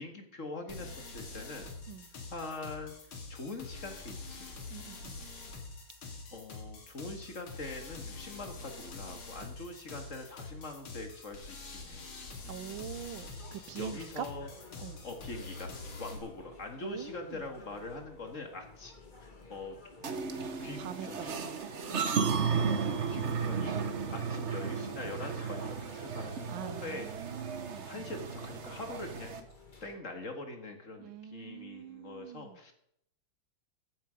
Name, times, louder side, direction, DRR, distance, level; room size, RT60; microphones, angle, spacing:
voice 1, 0.0-1.7 2.3-2.9 3.3-4.5 6.3-12.0 13.8-14.5 15.0-18.9 19.2-19.8 20.6-21.4 23.1-23.8 24.1-27.1 27.8-29.4 29.8-32.7, left 2 dB, 40° left, 5 dB, 2.0 m, -43 dB
sound 1, 0.7-16.2, left 3 dB, 85° left, 3.3 m, -45 dB
voice 2, 4.7-5.2 12.4-14.3 14.8-15.0 16.8-17.5 20.8-22.1 24.1-24.3 26.5-28.1 31.0-32.6, right 10 dB, 75° right, 15 dB, 1.4 m, -44 dB
sound 2, 12.7-30.0, left 3 dB, 25° left, 1.8 m, -55 dB
sound 3, 20.0-29.4, right 5 dB, 40° right, 1.1 m, -34 dB
15.0 x 9.8 x 5.1 m, 0.71 s
omnidirectional pair, 2.2 m